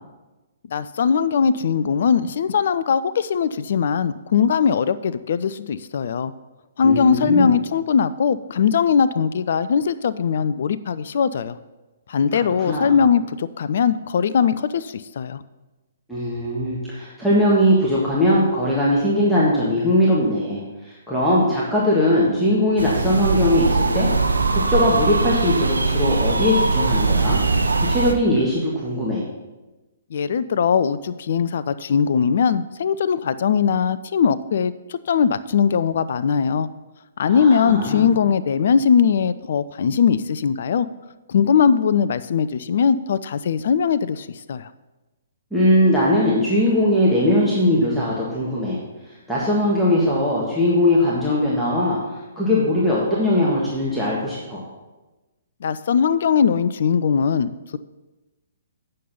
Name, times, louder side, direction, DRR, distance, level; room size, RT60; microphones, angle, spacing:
voice 1, 0.7-6.3 6.8-11.6 12.1-15.4 30.1-36.7 37.2-40.9 41.3-44.7 55.6-57.8, left 6 dB, 50° left, 14 dB, 0.3 m, -20 dB
voice 2, 6.8-7.5 12.3-12.9 16.1-24.1 24.5-27.4 27.8-29.3 37.2-38.1 45.5-48.8 49.3-52.0 52.4-54.6, left 1 dB, ahead, -8 dB, 1.7 m, -20 dB
sound 1, 22.8-28.1, right 3 dB, 75° right, 0.7 m, -21 dB
8.3 x 6.5 x 5.6 m, 1.1 s
figure-of-eight pair, 120°, 0 cm